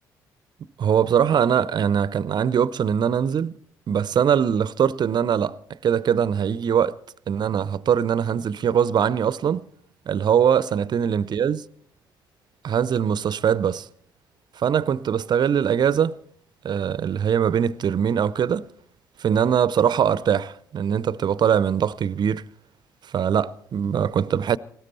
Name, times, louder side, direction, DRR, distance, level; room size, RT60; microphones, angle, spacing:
voice 1, 0.8-3.6 3.9-5.6 5.8-6.9 7.3-9.7 10.1-11.6 12.6-13.9 14.6-16.2 16.6-18.7 19.2-22.5 23.1-24.6, right 8 dB, 45° right, 0.6 m, -22 dB
19.0 x 17.0 x 4.2 m
figure-of-eight pair, 45°, 10 cm